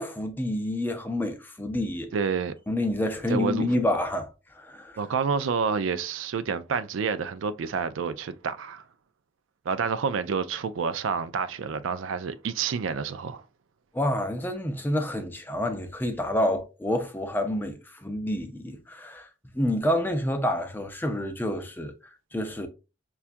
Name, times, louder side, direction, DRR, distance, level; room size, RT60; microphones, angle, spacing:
voice 1, 0.0-2.1 2.7-5.0 13.9-19.3 19.5-22.7, left 1 dB, 10° left, 0.5 m, -28 dB
voice 2, 2.1-2.5 3.3-3.7 5.0-8.8 9.7-13.4, right 5 dB, 80° right, 0.4 m, -28 dB
5.5 x 2.3 x 2.5 m
head